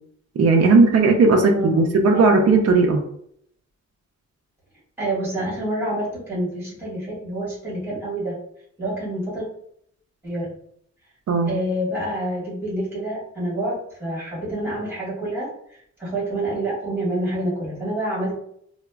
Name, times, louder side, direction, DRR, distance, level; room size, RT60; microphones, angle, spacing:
voice 1, 0.4-3.0 11.3-11.5, right 3 dB, 55° right, 2 dB, 0.5 m, -16 dB
voice 2, 1.5-1.8 2.1-2.2 5.0-8.4 8.8-9.5 10.2-10.5 11.5-15.5 16.0-18.4, right 1 dB, 10° right, -7 dB, 1.4 m, -27 dB
4.7 x 2.0 x 2.2 m, 0.69 s
wide cardioid pair, 170°, 30 cm